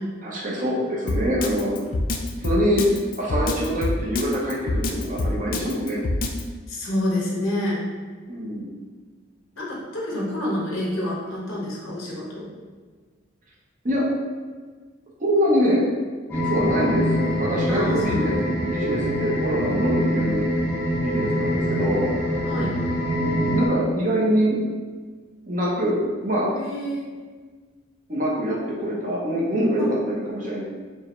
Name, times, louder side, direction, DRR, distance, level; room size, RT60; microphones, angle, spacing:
voice 1, 0.2-1.7 2.4-2.9 3.2-6.0 8.3-8.7 10.1-10.2 13.8-14.1 15.2-15.8 16.4-17.0 17.4-20.4 21.0-22.1 23.2-24.6 25.5-26.0 26.2-26.5 28.1-30.6, equal, 40° right, -5 dB, 0.8 m, -24 dB
Drum kit, 1.1-6.4, left 2 dB, 40° left, 0.3 m, -25 dB
voice 2, 6.7-7.9 9.6-12.5 16.7-17.3 17.7-18.4 22.4-22.7 26.5-27.0 29.8-29.9, left 1 dB, 75° left, -5 dB, 1.1 m, -28 dB
sound 1, 16.3-23.7, equal, 10° left, 0.8 m, -24 dB
4.6 x 2.2 x 3.1 m, 1.4 s
head